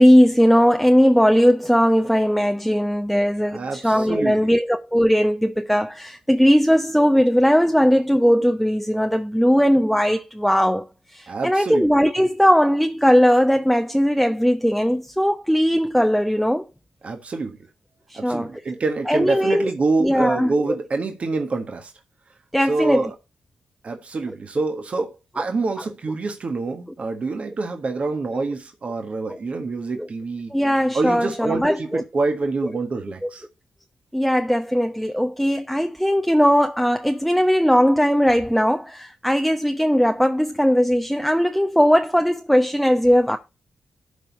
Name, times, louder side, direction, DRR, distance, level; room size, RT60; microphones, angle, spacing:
voice 1, 0.0-10.9 11.1-16.6 18.1-18.5 19.1-19.7 20.0-20.5 22.5-23.1 29.3-29.4 30.0-30.1 30.5-32.0 34.1-43.4, equal, ahead, 0.8 m, -18 dB
voice 2, 3.4-4.5 11.3-11.9 17.0-17.6 18.1-21.9 22.7-23.1 23.8-30.5 30.9-33.5, right 3 dB, 50° right, 1.6 m, -26 dB
12.5 x 4.4 x 4.1 m
supercardioid pair, 45°, 3 cm